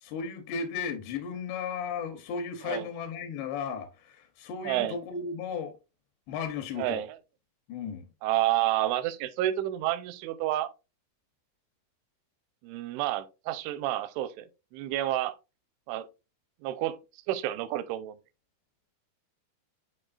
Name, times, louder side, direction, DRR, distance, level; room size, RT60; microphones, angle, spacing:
voice 1, 0.0-5.7 6.3-7.0 7.7-8.1, left 6 dB, 75° left, 2.8 m, -35 dB
voice 2, 4.7-5.0 6.8-7.1 8.2-10.7 12.6-14.5 14.7-15.4 15.9-16.1 16.6-17.0 17.3-18.2, right 14 dB, 85° right, 2.9 m, -29 dB
8.8 x 4.6 x 2.4 m
omnidirectional pair, 5.4 m